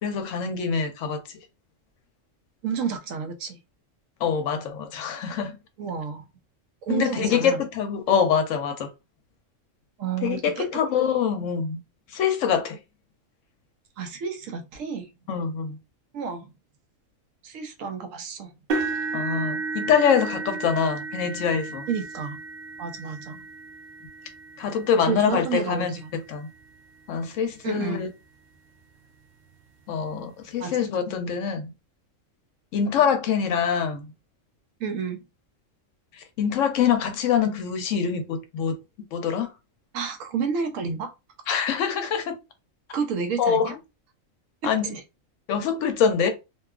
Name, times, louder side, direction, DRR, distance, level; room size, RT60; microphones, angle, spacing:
voice 1, 0.0-1.2 4.2-5.5 6.9-8.9 10.2-11.8 12.1-12.8 15.3-15.8 19.1-21.9 24.6-25.9 26.3-26.5 27.1-28.1 29.9-31.7 32.7-34.1 36.4-38.8 39.1-39.5 41.5-42.4 43.4-43.7 44.6-44.9 45.5-46.3, left 7 dB, 75° left, 0.9 m, -24 dB
voice 2, 2.6-3.6 5.8-6.3 6.8-7.6 10.0-10.7 14.0-15.1 16.1-16.5 17.4-18.5 21.9-22.4 22.8-23.5 25.0-26.1 27.6-28.1 30.6-30.9 34.8-35.2 39.9-41.1 42.9-43.8 44.8-45.0, right 6 dB, 80° right, 1.0 m, -30 dB
sound 1, 18.7-26.7 27.4-27.6 28.0-28.1 29.5-29.6, right 4 dB, 60° right, 0.6 m, -34 dB
2.8 x 2.3 x 2.3 m
omnidirectional pair, 1.4 m